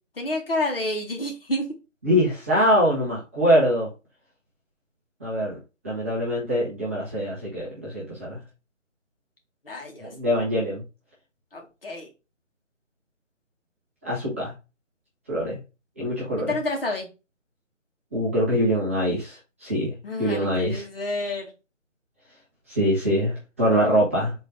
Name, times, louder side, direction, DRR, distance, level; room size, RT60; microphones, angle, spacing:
voice 1, 0.2-1.6 9.7-10.1 11.5-12.1 16.5-17.1 20.0-21.5, left 1 dB, 45° left, 1 dB, 2.2 m, -29 dB
voice 2, 2.0-3.9 5.2-5.6 5.8-8.4 10.0-10.8 14.0-14.5 15.3-15.6 16.0-16.5 18.1-20.8 22.7-24.3, equal, 10° right, -8 dB, 0.9 m, -23 dB
5.2 x 3.9 x 4.8 m, 0.29 s
figure-of-eight pair, 150°, 38 cm